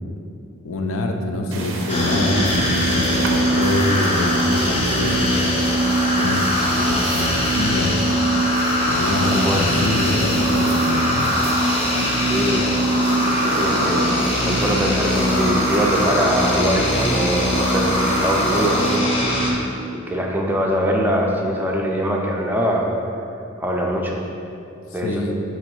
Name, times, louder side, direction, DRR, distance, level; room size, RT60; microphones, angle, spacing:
voice 1, 0.6-5.5 6.2-8.2 8.8-11.3 24.9-25.3, left 2 dB, 80° left, 3 dB, 0.4 m, -25 dB
sound 1, 1.5-19.0, right 2 dB, 80° right, 0.5 m, -31 dB
sound 2, 1.9-19.5, equal, 30° left, 0.6 m, -21 dB
voice 2, 9.2-9.6 12.1-12.7 13.4-14.1 14.4-17.9 18.2-18.9 19.3-19.5 20.1-22.9 23.6-24.2 24.9-25.2, equal, 10° right, -1 dB, 0.3 m, -22 dB
3.9 x 3.0 x 4.4 m, 2.7 s
head